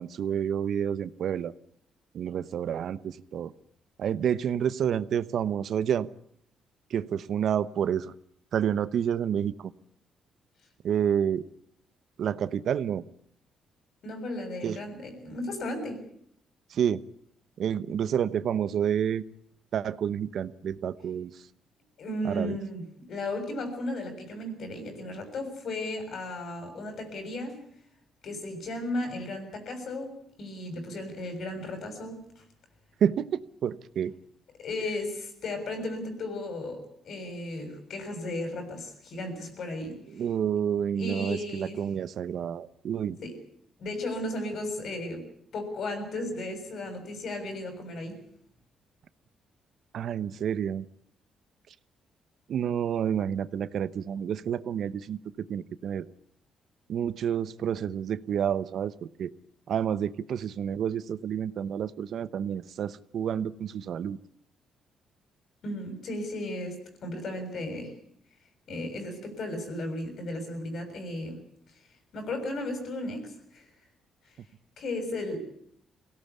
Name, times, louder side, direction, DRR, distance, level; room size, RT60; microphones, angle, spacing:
voice 1, 0.0-1.5 2.1-3.5 4.0-6.1 6.9-8.1 8.5-9.7 10.8-11.4 12.2-13.0 14.6-14.8 16.7-17.0 17.6-19.2 19.7-21.4 22.2-22.6 33.0-34.1 40.1-43.2 49.9-50.9 52.5-56.1 56.9-59.3 59.7-64.2, right 8 dB, 65° right, 16 dB, 0.9 m, -29 dB
voice 2, 14.0-16.0 22.0-22.8 23.1-27.6 28.2-32.4 34.6-40.0 41.0-41.8 43.2-43.4 43.8-48.2 65.6-67.9 68.7-71.4 72.1-73.7 74.8-75.4, left 1 dB, 60° left, 7 dB, 6.8 m, -35 dB
23.0 x 17.5 x 8.4 m, 0.66 s
cardioid pair, 90°, 0 cm